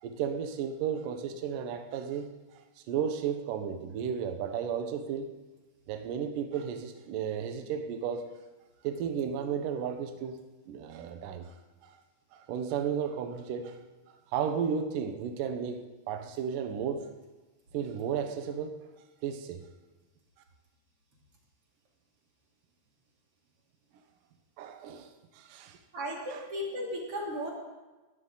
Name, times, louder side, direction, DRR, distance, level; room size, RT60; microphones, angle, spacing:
voice 1, 0.0-2.3 2.9-5.4 5.9-8.3 8.8-11.5 11.8-12.0 12.3-13.8 14.1-15.8 16.1-17.1 17.7-18.8 19.2-19.7 24.6-25.8 26.3-26.5, right 7 dB, 65° right, 6 dB, 2.4 m, -34 dB
voice 2, 25.9-27.5, equal, 35° right, -2 dB, 3.8 m, -35 dB
20.5 x 16.0 x 4.1 m, 1.2 s
omnidirectional pair, 4.8 m